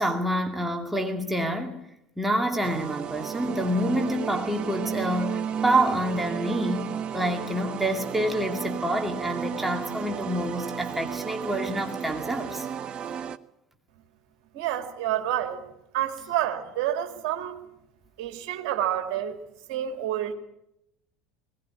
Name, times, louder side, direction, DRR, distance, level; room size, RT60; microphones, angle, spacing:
voice 1, 0.0-1.8 2.2-12.7, right 1 dB, 5° right, 2.4 m, -27 dB
sound 1, 2.6-13.4, right 8 dB, 35° right, 0.8 m, -33 dB
voice 2, 14.5-15.6 15.9-17.6 18.2-19.4 19.7-20.3, right 11 dB, 60° right, 2.5 m, -28 dB
20.0 x 18.0 x 8.5 m
figure-of-eight pair, 70°, 3 cm